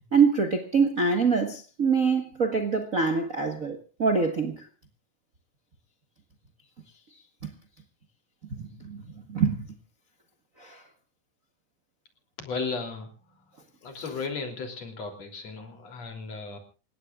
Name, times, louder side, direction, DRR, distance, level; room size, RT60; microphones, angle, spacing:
voice 1, 0.1-4.7 7.4-7.5 8.5-9.0 9.3-9.7 10.6-10.8, right 5 dB, 35° right, 1.3 m, -25 dB
voice 2, 12.4-13.1 13.8-16.6, left 4 dB, 55° left, 4.3 m, -35 dB
28.5 x 17.0 x 2.4 m
omnidirectional pair, 3.7 m